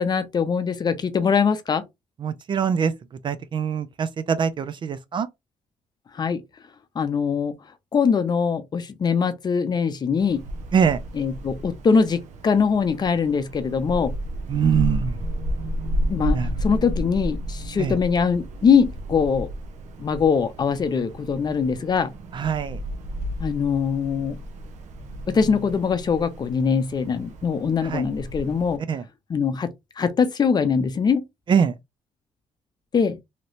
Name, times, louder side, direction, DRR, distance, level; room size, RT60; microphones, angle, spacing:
voice 1, 0.0-1.8 6.2-6.4 7.0-7.5 7.9-10.4 11.2-14.1 16.1-19.5 20.0-22.1 23.4-24.4 25.3-28.8 29.3-29.7 30.0-31.2 32.9-33.2, left 6 dB, 35° left, 0.6 m, -22 dB
voice 2, 2.2-2.9 3.2-5.3 10.7-11.0 14.5-15.2 16.3-16.5 17.8-18.0 22.3-22.8 27.8-28.1 28.9-29.0 31.5-31.7, right 7 dB, 45° right, 0.4 m, -23 dB
Wind, 10.2-28.8, equal, 85° right, 0.7 m, -32 dB
3.1 x 2.9 x 2.6 m
cardioid pair, 120°, 12 cm